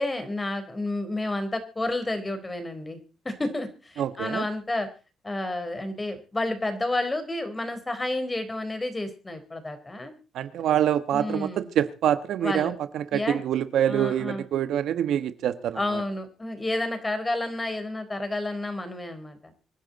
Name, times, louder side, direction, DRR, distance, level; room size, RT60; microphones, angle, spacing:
voice 1, 0.0-3.0 3.2-4.9 5.2-10.1 11.1-11.7 12.4-12.8 13.1-13.4 13.9-14.4 15.7-19.5, left 2 dB, 20° left, 3.9 m, -30 dB
voice 2, 4.0-4.4 10.3-16.0, right 10 dB, 75° right, 1.3 m, -26 dB
25.5 x 10.5 x 4.1 m
cardioid pair, 90°, 0 cm